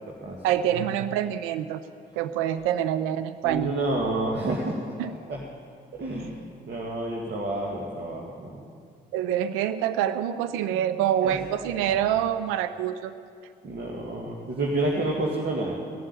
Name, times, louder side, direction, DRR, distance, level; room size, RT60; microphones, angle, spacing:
voice 1, 0.4-1.8 2.1-3.7 5.0-5.1 9.1-13.1, right 10 dB, 85° right, 12 dB, 0.6 m, -26 dB
voice 2, 3.4-4.8 5.0-5.4 5.9-6.4 6.7-8.7 11.2-11.4 11.9-12.0 13.6-15.7, right 2 dB, 55° right, -2 dB, 2.1 m, -29 dB
16.5 x 7.6 x 9.0 m, 2.2 s
hypercardioid pair, 50°, 21 cm